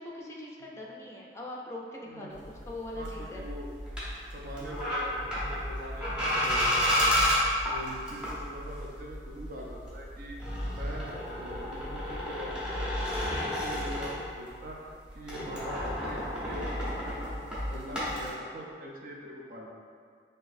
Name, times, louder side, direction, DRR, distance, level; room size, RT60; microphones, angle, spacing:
voice 1, 0.0-3.4, left 1 dB, 15° left, -3 dB, 0.5 m, -41 dB
voice 2, 2.1-2.5 2.9-3.7 4.3-7.1 7.7-10.4 10.7-14.9 15.1-19.7, equal, 55° right, -2 dB, 0.6 m, -43 dB
sound 1, 2.3-14.7 15.0-18.3, equal, 5° right, 0.9 m, -32 dB
5.8 x 2.6 x 2.6 m, 2.2 s
head